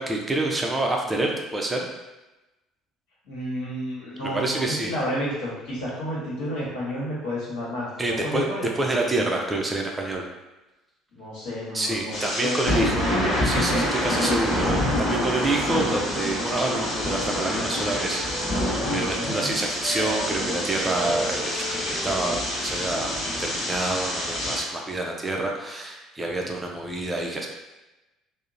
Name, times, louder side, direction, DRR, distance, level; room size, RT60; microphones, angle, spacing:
voice 1, 0.0-1.9 4.2-4.9 8.0-8.5 8.8-10.2 11.7-13.1 13.4-18.4 18.9-23.1 23.4-27.5, right 2 dB, 20° right, 0 dB, 0.4 m, -27 dB
voice 2, 3.2-7.9 8.2-8.7 11.1-13.0 15.6-16.0 19.2-19.6, equal, 70° left, -8 dB, 1.1 m, -31 dB
sound 1, 12.1-24.6, left 1 dB, 50° left, 1.0 m, -27 dB
Wind instrument woodwind instrument, 16.2-19.5 19.8-23.9, right 2 dB, 25° left, 1.0 m, -38 dB
2.8 x 2.0 x 2.5 m, 1.0 s
hypercardioid pair, 60°, 0 cm